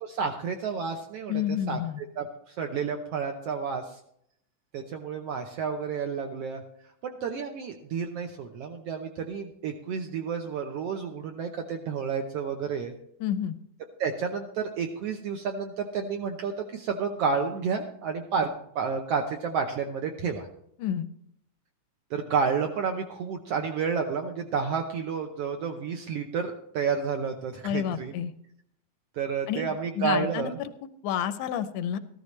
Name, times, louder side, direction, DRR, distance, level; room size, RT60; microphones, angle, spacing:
voice 1, 0.0-1.8 2.2-4.0 4.7-6.6 7.0-12.9 14.0-18.5 18.7-20.5 22.1-28.1 29.1-30.5, right 6 dB, 75° right, 4 dB, 1.5 m, -30 dB
voice 2, 1.3-2.0 13.2-13.6 20.8-21.1 27.6-28.3 29.5-30.7 31.0-32.0, left 9 dB, 80° left, 11 dB, 2.0 m, -30 dB
14.5 x 13.0 x 3.2 m, 0.72 s
omnidirectional pair, 3.6 m